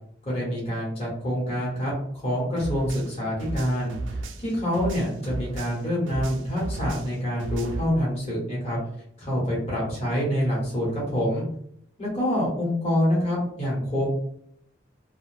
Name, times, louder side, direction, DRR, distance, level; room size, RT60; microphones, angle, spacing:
voice 1, 0.2-1.9 2.2-4.0 4.4-8.8 9.2-11.4 12.0-14.1, equal, 35° left, -6 dB, 1.0 m, -26 dB
sound 1, 2.6-5.8 6.1-7.9, right 2 dB, 75° right, 0.4 m, -34 dB
2.5 x 2.2 x 3.2 m, 0.69 s
head